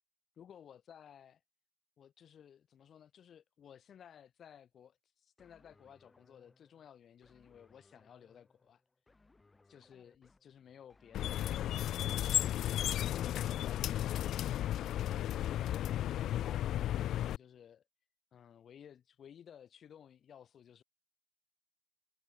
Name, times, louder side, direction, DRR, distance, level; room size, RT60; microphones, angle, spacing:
voice 1, 0.4-1.4 2.0-8.8 9.7-14.3 14.8-15.9 16.2-17.8 18.3-20.8, left 9 dB, 60° left, 3.4 m, -57 dB
sound 1, 5.4-12.7, left 3 dB, 20° left, 4.2 m, -67 dB
sound 2, 11.1-17.4, left 12 dB, 90° left, 0.4 m, -34 dB
cardioid pair, 130°, 0 cm